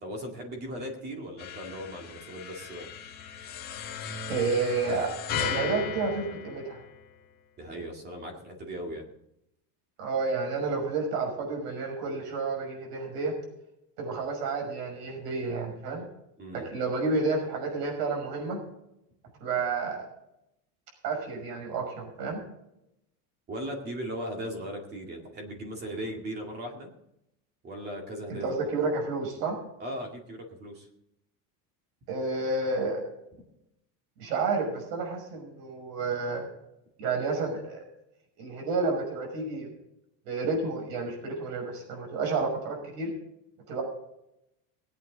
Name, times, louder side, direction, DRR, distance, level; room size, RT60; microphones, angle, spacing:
voice 1, 0.0-2.9 7.6-9.0 16.4-16.7 23.5-26.9 27.6-28.6 29.8-30.9, equal, 20° right, 2 dB, 2.1 m, -38 dB
sound 1, 1.4-7.2, left 7 dB, 20° left, 1.4 m, -36 dB
voice 2, 4.3-5.1 5.4-6.8 10.0-13.3 14.0-16.1 16.5-18.6 19.4-20.0 21.0-22.4 28.3-29.6 32.1-33.0 34.2-36.4 37.0-37.8 38.4-39.7 40.3-43.1 43.7-43.8, right 3 dB, 85° right, 1 dB, 6.0 m, -30 dB
20.0 x 9.1 x 3.9 m, 0.82 s
cardioid pair, 180°, 47 cm